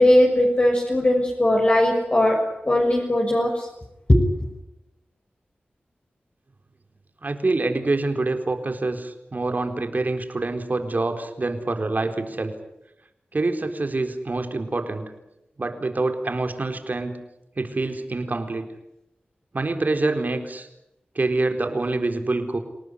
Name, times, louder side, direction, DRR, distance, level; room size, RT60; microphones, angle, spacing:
voice 1, 0.0-2.4 2.6-3.7 4.1-4.2, left 1 dB, 35° left, -1 dB, 6.4 m, -18 dB
voice 2, 7.2-12.5 13.3-15.1 15.6-17.2 17.6-18.7 19.5-20.7 21.2-22.6, right 2 dB, 50° right, 6 dB, 4.1 m, -26 dB
28.5 x 18.5 x 9.9 m, 0.87 s
wide cardioid pair, 65°, 4 cm